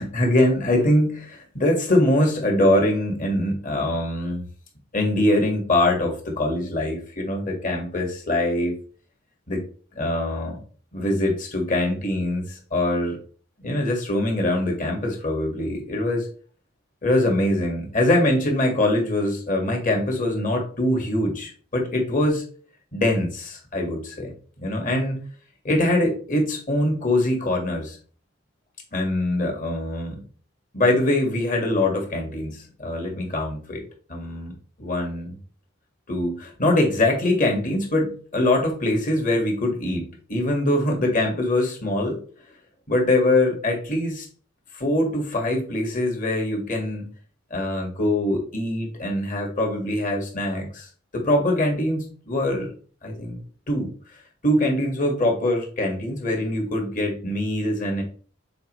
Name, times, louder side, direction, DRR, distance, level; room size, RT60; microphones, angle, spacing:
voice 1, 0.0-4.4 4.9-8.8 9.5-9.6 9.9-10.6 10.9-13.2 13.6-16.3 17.0-22.4 22.9-25.2 25.6-28.0 28.9-30.2 30.7-33.8 34.1-34.5 34.8-35.4 36.1-42.2 42.9-44.3 44.7-47.0 47.5-52.7 53.0-53.4 53.7-53.9 54.4-58.0, left 1 dB, 40° left, 1 dB, 1.7 m, -23 dB
7.0 x 4.4 x 3.1 m, 0.41 s
head